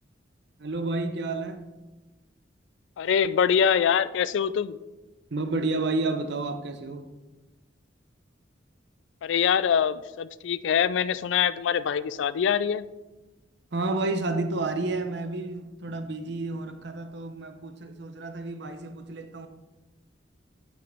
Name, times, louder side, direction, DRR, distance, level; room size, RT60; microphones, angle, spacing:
voice 1, 0.6-1.6 5.3-7.1 13.7-19.5, right 2 dB, 65° right, 0.7 m, -30 dB
voice 2, 3.0-4.8 9.2-12.8, left 8 dB, 80° left, 0.3 m, -24 dB
9.6 x 6.0 x 3.4 m
head